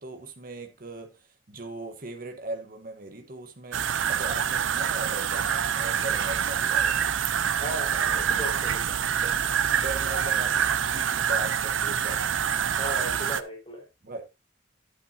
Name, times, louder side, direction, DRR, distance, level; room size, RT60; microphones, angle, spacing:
voice 1, 0.0-7.1 9.2-9.4 9.8-12.4 14.0-14.2, right 2 dB, 45° right, 1.2 m, -39 dB
sound 1, 3.7-13.4, right 8 dB, 85° right, 0.6 m, -26 dB
voice 2, 7.6-8.8 12.7-13.9, right 1 dB, 25° left, 4.3 m, -36 dB
11.5 x 8.4 x 2.7 m
head